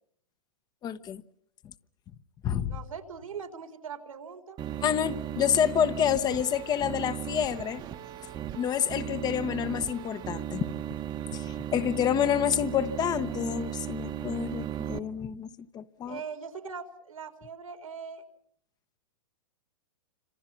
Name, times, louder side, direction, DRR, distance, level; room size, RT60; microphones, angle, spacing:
voice 1, 0.8-1.2 2.4-2.8 4.8-7.8 8.5-10.6 11.3-15.5 15.7-16.2, left 9 dB, 25° left, 1.1 m, -28 dB
voice 2, 2.7-4.6 16.0-18.2, right 6 dB, 80° right, 4.2 m, -41 dB
sound 1, 4.6-15.0, right 11 dB, 25° right, 1.3 m, -36 dB
29.5 x 26.5 x 5.9 m
hypercardioid pair, 125°, 17 cm